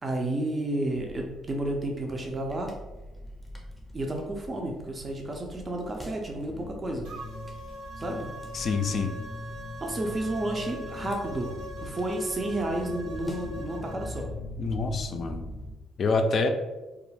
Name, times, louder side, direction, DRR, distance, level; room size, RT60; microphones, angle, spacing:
voice 1, 0.0-2.8 3.9-7.1 8.0-8.3 9.8-14.3, right 1 dB, 35° right, 1 dB, 0.5 m, -31 dB
sound 1, 0.9-15.7, left 1 dB, 10° left, 0.6 m, -41 dB
sound 2, 7.0-14.2, equal, 80° right, 0.9 m, -42 dB
voice 2, 8.5-9.1 14.6-15.5 16.0-16.5, left 4 dB, 55° left, 6 dB, 0.3 m, -26 dB
2.3 x 2.1 x 3.2 m, 1.1 s
supercardioid pair, 65°, 0 cm